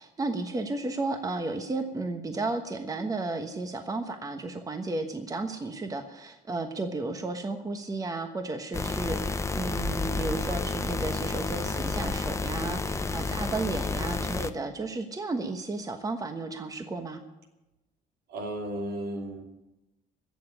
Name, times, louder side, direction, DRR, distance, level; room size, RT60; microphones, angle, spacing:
voice 1, 0.0-17.2, right 3 dB, 20° right, 6 dB, 1.3 m, -33 dB
sound 1, 8.7-14.5, left 3 dB, 15° left, 0.8 m, -30 dB
voice 2, 18.3-19.4, right 1 dB, 70° right, 2 dB, 2.8 m, -34 dB
16.5 x 7.1 x 9.9 m, 1.0 s
cardioid pair, 110°, 17 cm